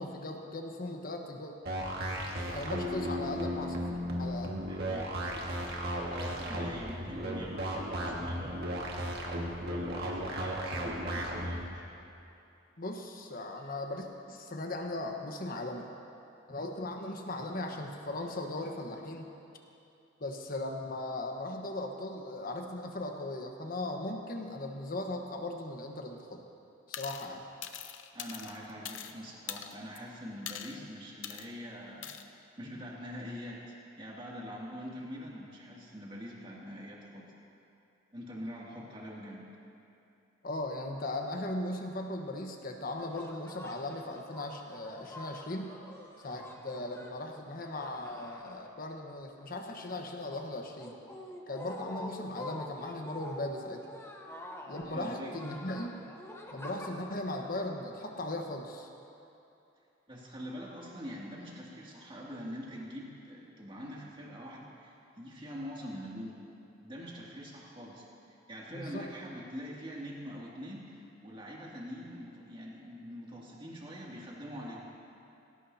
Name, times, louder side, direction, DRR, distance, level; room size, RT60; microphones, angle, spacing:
voice 1, 0.0-1.5 2.5-3.9 4.2-4.5 12.8-15.9 16.5-19.3 20.2-26.4 26.9-27.4 40.4-45.7 46.2-51.0 51.5-53.8 54.7-55.9 56.5-58.9 68.7-69.1, left 2 dB, 50° left, 2 dB, 1.3 m, -38 dB
sound 1, 1.6-11.7, equal, 55° right, 1.9 m, -35 dB
voice 2, 4.7-5.5 6.1-9.2 9.7-11.8 28.1-37.3 38.1-39.4 54.8-55.3 60.1-66.4 66.8-68.1 68.5-74.9, equal, 30° right, -4 dB, 2.5 m, -44 dB
sound 2, 26.9-27.3 27.6-29.1 29.5-30.0 30.5-30.8 31.2-31.5 32.0-32.2, left 10 dB, 75° left, 0.7 m, -42 dB
sound 3, 42.9-49.1 49.4-58.4, left 1 dB, 15° left, 1.0 m, -47 dB
19.0 x 17.5 x 2.9 m, 2.8 s
head